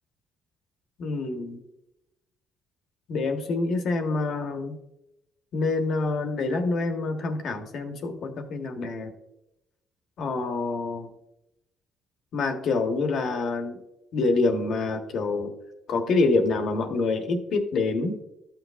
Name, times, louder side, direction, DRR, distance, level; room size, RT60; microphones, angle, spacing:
voice 1, 1.0-1.6 3.1-4.8 5.5-9.1 10.2-11.1 12.3-13.8 14.1-15.5 15.9-18.2, left 3 dB, 65° left, 5 dB, 1.2 m, -26 dB
12.0 x 5.9 x 2.5 m, 0.88 s
cardioid pair, 90°, 0 cm